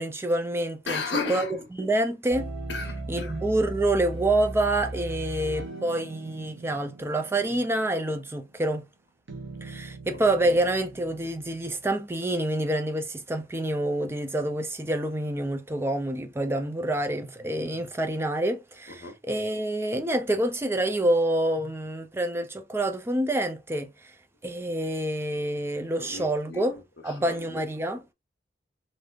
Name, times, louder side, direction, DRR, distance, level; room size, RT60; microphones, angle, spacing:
voice 1, 0.0-1.0 1.3-1.5 1.7-2.5 3.1-8.8 9.6-23.9 24.4-28.0, right 1 dB, 15° right, 0.4 m, -27 dB
voice 2, 0.9-1.6 2.7-3.4 10.1-10.6 18.9-19.2 26.0-27.6, left 4 dB, 60° left, 1.0 m, -35 dB
sound 1, 2.3-8.5 9.3-11.9, right 2 dB, 90° right, 0.9 m, -38 dB
3.5 x 2.6 x 2.4 m
head